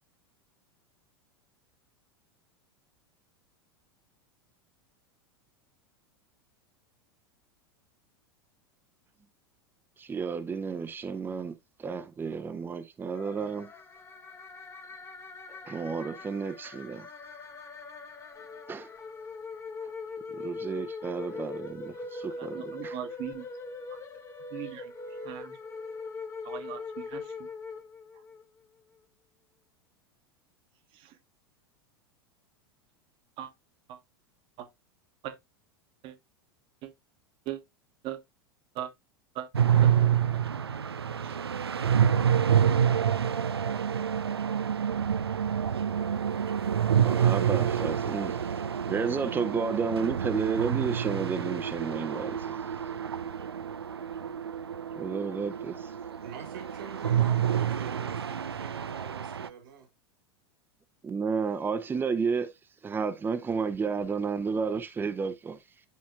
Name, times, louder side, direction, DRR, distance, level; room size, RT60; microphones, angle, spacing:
voice 1, 10.0-13.7 15.5-17.1 18.7-18.9 20.3-23.0 47.0-52.6 54.9-55.9 57.7-57.8 61.0-62.5 62.8-65.6, right 5 dB, 15° right, 0.8 m, -32 dB
sound 1, 13.1-28.4, left 4 dB, 20° left, 1.1 m, -41 dB
voice 2, 22.4-23.5 24.5-24.9 25.2-25.6 26.4-27.5 30.9-31.1 33.4-33.5 33.9-34.0 34.6-34.7 35.2-35.4 36.0-36.1 36.8-36.9 37.4-37.6 38.0-38.2 38.7-38.9 39.3-39.5 39.8-39.9 41.2-41.4, right 12 dB, 40° right, 1.3 m, -39 dB
sound 2, 39.5-59.5, right 8 dB, 80° right, 0.4 m, -28 dB
voice 3, 56.2-59.9, right 7 dB, 60° right, 1.7 m, -44 dB
12.5 x 4.1 x 2.3 m
figure-of-eight pair, 85°, 13 cm